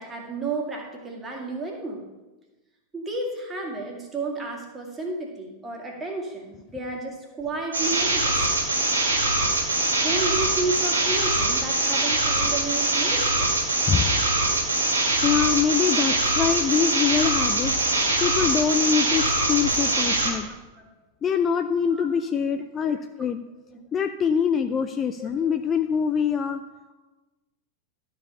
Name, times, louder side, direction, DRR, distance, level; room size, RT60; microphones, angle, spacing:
voice 1, 0.0-2.0 2.9-8.4 10.0-13.5 15.7-15.8 16.4-16.6 20.5-20.9 21.9-22.1 22.5-22.6 22.9-23.0 25.2-25.3, right 3 dB, 15° right, -1 dB, 2.1 m, -32 dB
sound 1, 7.7-20.3, right 2 dB, 80° right, 1.8 m, -23 dB
voice 2, 13.8-14.2 15.2-17.8 18.2-20.5 21.2-23.4 23.9-26.6, left 7 dB, 25° left, 9 dB, 0.4 m, -24 dB
12.0 x 4.7 x 5.3 m, 1.1 s
figure-of-eight pair, 90°, 0 cm